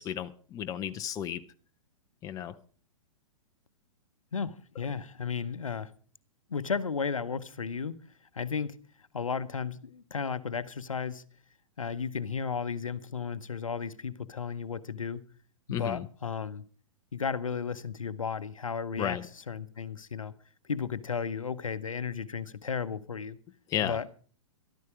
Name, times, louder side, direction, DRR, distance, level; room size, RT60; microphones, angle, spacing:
voice 1, 0.0-1.4 2.2-2.5 15.7-16.1 19.0-19.2 23.7-24.0, left 10 dB, 20° left, 0.7 m, -33 dB
voice 2, 4.3-5.9 6.5-8.0 8.3-8.8 9.1-11.2 11.8-15.2 15.7-16.6 17.1-20.3 20.7-23.4 23.8-24.1, left 6 dB, 80° left, 0.8 m, -34 dB
14.0 x 12.5 x 4.8 m
figure-of-eight pair, 110°, 17 cm